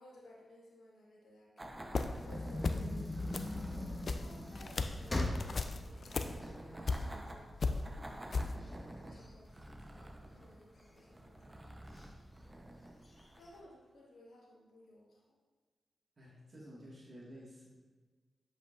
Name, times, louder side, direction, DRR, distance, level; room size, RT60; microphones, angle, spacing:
voice 1, 0.0-3.7 4.2-8.4 8.7-8.8 9.1-12.0 13.0-15.4, left 1 dB, 80° left, -3 dB, 1.4 m, -60 dB
sound 1, 1.6-13.7, right 1 dB, 25° right, 0.8 m, -51 dB
sound 2, 1.7-2.3 2.6-3.0 3.3-7.3 7.6-8.5, left 4 dB, 60° left, 0.4 m, -36 dB
sound 3, 2.1-7.3 7.8-7.9 8.2-10.3 10.8-11.3 11.9-12.1 12.3-12.4 12.9-13.5, left 1 dB, 35° left, 1.1 m, -40 dB
voice 2, 16.2-17.7, equal, 50° right, -5 dB, 1.8 m, -52 dB
7.8 x 5.1 x 2.5 m, 1.4 s
supercardioid pair, 40°, 0 cm